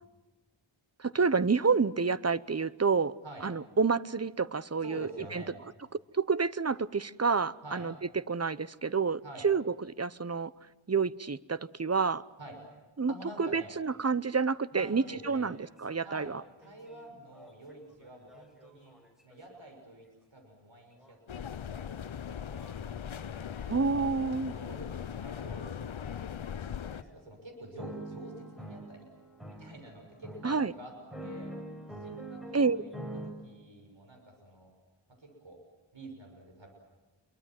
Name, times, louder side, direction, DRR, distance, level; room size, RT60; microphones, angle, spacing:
voice 1, 1.0-3.1 3.4-5.4 6.1-7.9 8.3-9.6 10.0-10.5 10.9-12.2 13.0-16.4 23.7-24.5 30.4-30.7 32.5-32.8, right 5 dB, 30° right, 17 dB, 0.8 m, -29 dB
voice 2, 4.8-5.6 7.6-7.9 9.2-9.5 12.4-12.6 13.1-13.7 14.7-15.5 16.0-16.3 16.6-18.9 19.2-20.1 20.3-22.5 24.5-25.8 26.9-29.0 29.6-30.9 31.2-31.5 32.0-32.9 33.2-34.7 35.2-35.6 35.9-36.7, right 1 dB, 70° right, 2 dB, 6.4 m, -48 dB
sound 1, 14.8-14.9 15.3-19.6 21.0-21.1 21.7-22.0 22.5-22.9 23.5-23.9 24.4-24.7 25.3-25.5 26.1-26.3 26.9-27.1 27.8-33.3, right 1 dB, ahead, 6.0 m, -46 dB
sound 2, 21.3-27.0, left 8 dB, 75° left, 0.8 m, -39 dB
27.5 x 23.0 x 7.7 m, 1.2 s
wide cardioid pair, 45°, 47 cm